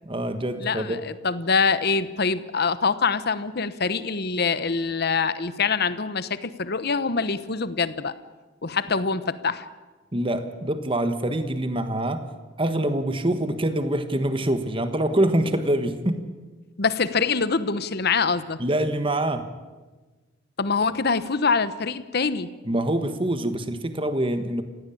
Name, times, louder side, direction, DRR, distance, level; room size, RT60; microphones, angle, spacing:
voice 1, 0.0-1.0 10.1-12.2 12.6-16.2 18.6-19.5 22.6-24.6, right 1 dB, 25° right, 9 dB, 1.4 m, -25 dB
voice 2, 0.6-1.0 1.2-8.1 8.6-9.7 16.8-18.6 20.6-22.5, left 5 dB, 55° left, 14 dB, 1.1 m, -24 dB
29.0 x 16.0 x 8.7 m, 1.3 s
head